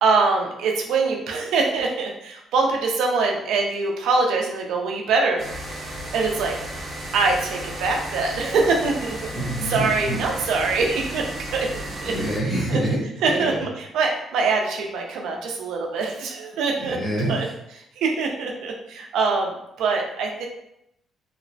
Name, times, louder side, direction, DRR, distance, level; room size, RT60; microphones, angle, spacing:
voice 1, 0.0-5.4 6.1-6.6 7.1-9.3 9.7-11.7 12.0-12.1 12.7-12.8 13.2-17.0 17.3-17.5 18.0-19.5 19.8-20.5, right 4 dB, 85° right, 1 dB, 0.4 m, -23 dB
sound 1, 5.4-12.4, right 1 dB, 45° right, 0.7 m, -34 dB
voice 2, 9.3-10.2 12.0-13.6 16.7-17.5, right 1 dB, 5° left, -9 dB, 1.0 m, -26 dB
2.9 x 2.0 x 2.6 m, 0.80 s
cardioid pair, 90°, 0 cm